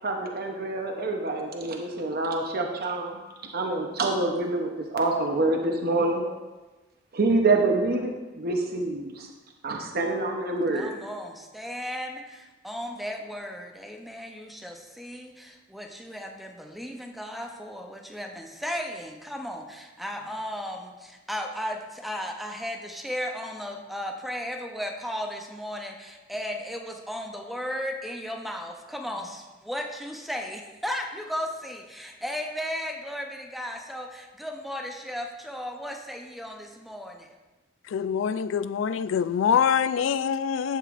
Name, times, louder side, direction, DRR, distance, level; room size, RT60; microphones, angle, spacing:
voice 1, 0.0-6.2 7.1-9.3 9.6-10.9, right 2 dB, 55° right, 2 dB, 0.8 m, -26 dB
voice 2, 10.7-37.3, equal, ahead, 2 dB, 0.7 m, -35 dB
voice 3, 37.9-40.8, left 7 dB, 90° left, 15 dB, 0.3 m, -25 dB
11.0 x 7.7 x 2.5 m, 1.2 s
head